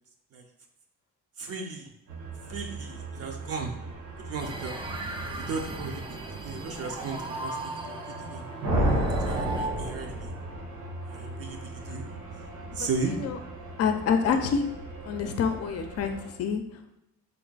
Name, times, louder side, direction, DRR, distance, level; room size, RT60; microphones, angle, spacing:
voice 1, 1.4-1.9 2.5-3.7 4.2-4.7 5.3-8.5 9.2-10.4 11.0-12.1 12.7-13.1 14.2-14.5, right 4 dB, 50° right, 2 dB, 0.7 m, -36 dB
sound 1, 2.1-16.3, right 2 dB, 90° right, 0.9 m, -41 dB
sound 2, 4.4-9.7, right 2 dB, 15° right, 0.5 m, -37 dB
sound 3, 8.6-10.6, right 1 dB, 70° right, 1.3 m, -27 dB
voice 2, 12.8-13.4 13.8-14.7 15.0-16.9, left 6 dB, 55° left, 7 dB, 0.5 m, -28 dB
3.5 x 2.2 x 4.0 m, 0.86 s
cardioid pair, 90°, 30 cm